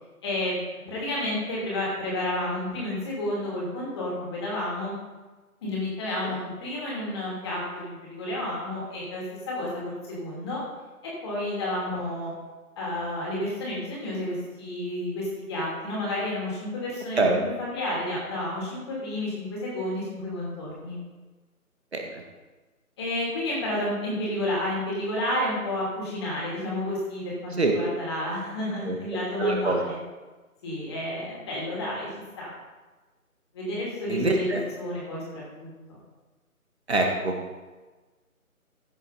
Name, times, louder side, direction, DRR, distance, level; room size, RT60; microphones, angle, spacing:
voice 1, 0.2-4.9 5.6-10.6 11.0-12.3 12.8-21.0 23.0-30.0 30.6-32.1 32.4-32.5 33.5-36.0, left 1 dB, 20° left, -5 dB, 2.7 m, -31 dB
voice 2, 29.4-29.8 34.1-34.6 36.9-37.6, right 3 dB, 45° right, 2 dB, 1.5 m, -24 dB
15.5 x 7.3 x 4.1 m, 1.2 s
figure-of-eight pair, 155°, 44 cm